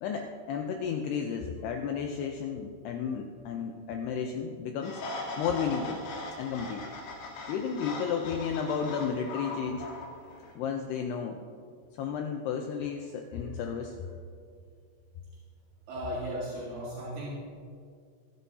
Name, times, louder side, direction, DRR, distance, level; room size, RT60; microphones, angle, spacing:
voice 1, 0.0-5.0 5.4-6.0 6.4-6.9 7.5-9.9 10.6-11.4 11.9-14.1, left 6 dB, 80° left, 3 dB, 2.4 m, -33 dB
sound 1, 4.8-10.5, left 2 dB, 65° left, 3.5 m, -40 dB
voice 2, 15.9-17.3, equal, 70° right, -6 dB, 4.1 m, -36 dB
23.5 x 11.5 x 2.8 m, 2.3 s
omnidirectional pair, 5.4 m